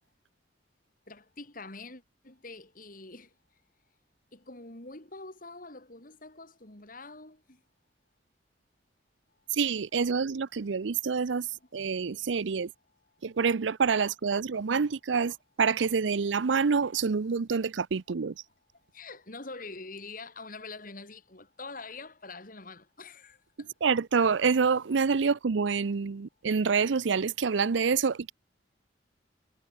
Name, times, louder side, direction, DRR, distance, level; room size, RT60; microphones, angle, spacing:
voice 1, 1.1-3.3 4.3-7.6 11.6-11.7 14.4-14.5 18.9-23.7, left 3 dB, 45° left, 3.9 m, -45 dB
voice 2, 9.5-11.5 11.7-12.7 13.2-18.3 23.8-28.3, right 5 dB, 85° right, 0.6 m, -27 dB
head